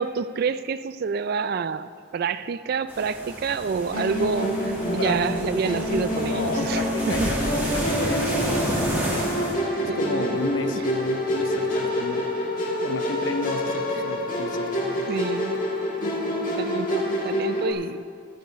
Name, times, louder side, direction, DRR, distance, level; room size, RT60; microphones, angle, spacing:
voice 1, 0.0-7.3 9.9-10.4 10.7-10.8 15.1-15.7 16.0-18.0, right 5 dB, 50° right, 15 dB, 0.3 m, -28 dB
sound 1, 2.9-9.5, equal, 10° right, 1.9 m, -31 dB
Musical instrument, 3.9-17.7, left 1 dB, 40° left, 1.8 m, -27 dB
voice 2, 6.1-7.4 7.7-9.3 9.8-12.3 12.8-15.1, left 2 dB, 70° left, 7 dB, 0.8 m, -32 dB
sound 2, 6.9-12.2, equal, 85° right, 1.9 m, -43 dB
12.0 x 11.0 x 4.6 m, 2.2 s
head